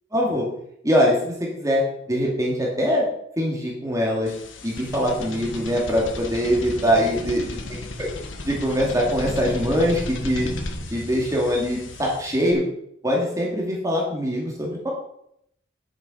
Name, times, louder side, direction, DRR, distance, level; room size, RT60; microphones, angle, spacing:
voice 1, 0.1-0.5 0.8-3.1 3.4-4.3 4.6-7.4 8.0-8.1 8.4-12.6 13.0-14.9, equal, 20° right, -2 dB, 2.6 m, -23 dB
sound 1, 4.3-12.5, left 2 dB, 90° left, 1.3 m, -34 dB
9.6 x 7.4 x 5.2 m, 0.71 s
head